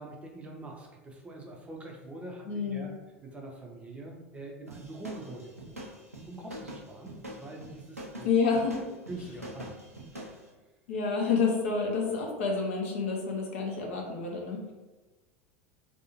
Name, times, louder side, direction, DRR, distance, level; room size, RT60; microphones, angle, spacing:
voice 1, 0.0-2.9 3.2-5.9 6.3-8.3 8.9-9.7 10.1-10.5, right 2 dB, 15° right, 0 dB, 0.5 m, -44 dB
voice 2, 2.5-2.9 8.2-8.8 10.9-14.7, left 5 dB, 60° left, 0 dB, 0.6 m, -29 dB
sound 1, 4.7-10.4, right 1 dB, 85° right, 0.5 m, -44 dB
2.6 x 2.3 x 2.8 m, 1.2 s
figure-of-eight pair, 80°, 8 cm